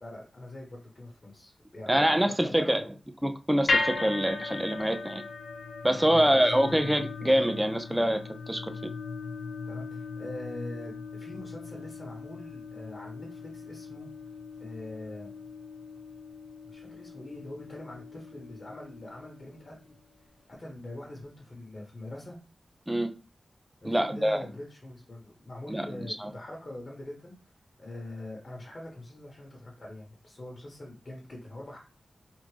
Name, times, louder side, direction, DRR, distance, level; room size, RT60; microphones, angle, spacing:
voice 1, 0.0-2.9 6.0-6.8 9.7-14.1 14.6-15.4 16.7-19.9 20.5-22.4 23.8-27.3 27.8-31.8, left 1 dB, 40° left, 1.1 m, -43 dB
voice 2, 1.9-2.8 3.2-5.2 5.8-8.7 22.9-23.1 23.8-24.4 25.7-26.3, equal, 10° right, 0.4 m, -25 dB
sound 1, 3.7-19.9, left 4 dB, 80° left, 0.7 m, -37 dB
3.5 x 2.4 x 3.2 m
wide cardioid pair, 90°, 0 cm